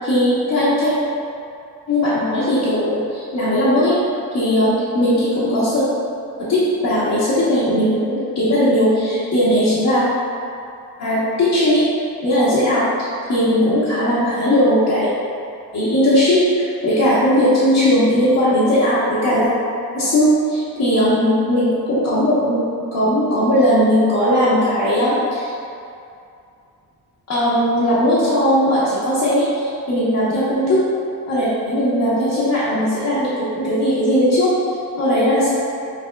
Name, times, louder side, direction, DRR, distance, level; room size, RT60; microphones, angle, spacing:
voice 1, 0.0-0.9 1.9-4.0 4.3-5.8 6.4-10.0 11.0-11.8 12.2-15.1 15.7-19.5 19.9-25.5 27.3-30.8 31.3-34.5 35.0-35.5, equal, 50° left, -11 dB, 1.1 m, -18 dB
6.0 x 3.5 x 2.2 m, 2.5 s
cardioid pair, 140°, 37 cm